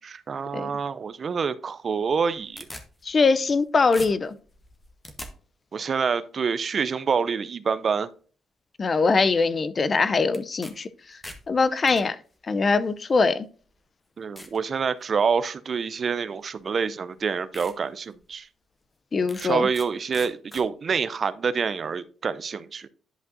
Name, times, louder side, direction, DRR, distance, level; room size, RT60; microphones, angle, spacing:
voice 1, 0.0-2.7 5.7-8.1 14.2-18.5 19.4-22.9, right 5 dB, 45° right, 0.5 m, -27 dB
sound 1, 2.1-3.6 3.9-5.3 10.3-10.7 11.0-12.0 12.9-13.0 13.6-13.7 14.4-14.6 15.1-15.4 16.6-16.7 17.1-17.2 17.5-17.7 18.2-18.3 19.3-19.9 20.1-20.6, left 1 dB, 15° left, 1.1 m, -42 dB
voice 2, 3.0-4.3 8.8-10.9 11.5-12.2 12.5-13.5 19.1-19.7, left 4 dB, 35° left, 0.5 m, -22 dB
11.0 x 5.3 x 2.6 m
cardioid pair, 90°, 0 cm